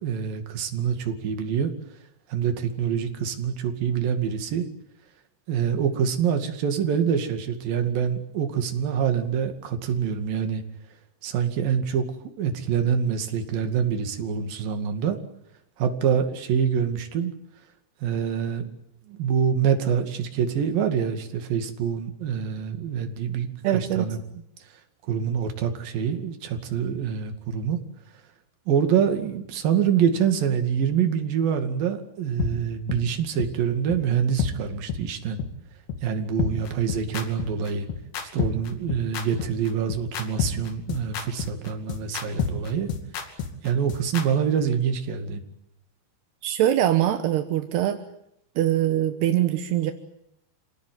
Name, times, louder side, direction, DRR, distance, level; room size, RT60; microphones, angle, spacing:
voice 1, 0.0-1.7 2.3-4.7 5.5-10.6 11.2-12.1 12.4-15.2 15.8-17.3 18.0-18.7 19.1-24.2 25.1-27.8 28.7-35.4 36.0-37.9 38.3-42.9 43.6-45.4, right 7 dB, 65° right, 6 dB, 3.9 m, -25 dB
voice 2, 23.6-24.1 46.4-48.0 48.6-49.9, right 12 dB, 85° right, 7 dB, 3.3 m, -23 dB
sound 1, 32.4-32.5 32.9-33.0 33.4-33.5 33.9-34.0 34.4-34.5 34.9-35.0 35.4-35.5 35.9-36.0 36.4-44.2, left 7 dB, 85° left, 4.6 m, -28 dB
27.5 x 18.5 x 9.4 m, 0.78 s
omnidirectional pair, 4.6 m